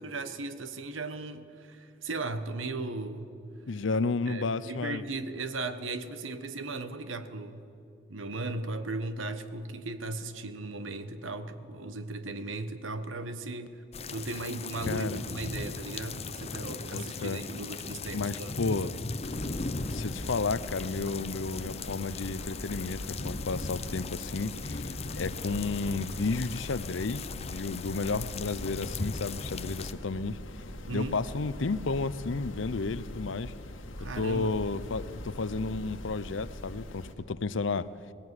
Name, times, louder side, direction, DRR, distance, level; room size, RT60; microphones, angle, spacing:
voice 1, 0.0-3.3 4.3-7.6 8.1-13.8 14.1-18.6 30.8-31.2 34.0-34.5, right 2 dB, 80° right, 11 dB, 1.2 m, -37 dB
voice 2, 3.7-5.0 14.9-15.2 16.9-17.4 18.1-18.9 19.9-24.9 25.2-30.4 30.9-33.5 34.1-37.9, left 3 dB, 70° left, 16 dB, 0.7 m, -32 dB
sound 1, 13.9-29.9, left 3 dB, 30° left, 0.7 m, -38 dB
sound 2, 19.2-37.1, left 1 dB, 90° left, 1.8 m, -42 dB
19.0 x 16.0 x 9.7 m, 2.6 s
head